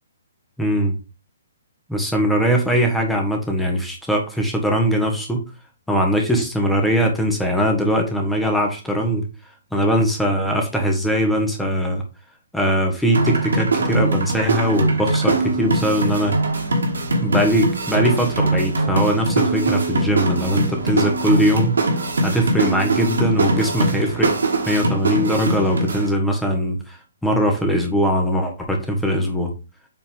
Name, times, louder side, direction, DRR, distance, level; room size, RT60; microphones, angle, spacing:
voice 1, 0.6-0.9 1.9-5.4 5.9-9.3 9.7-12.0 12.5-16.4 17.2-21.8 22.2-24.4 24.7-29.5, equal, 5° left, 2 dB, 1.5 m, -21 dB
sound 1, 13.1-26.1, right 2 dB, 70° right, 2.2 m, -22 dB
7.4 x 4.3 x 3.6 m, 0.32 s
figure-of-eight pair, 130°, 0 cm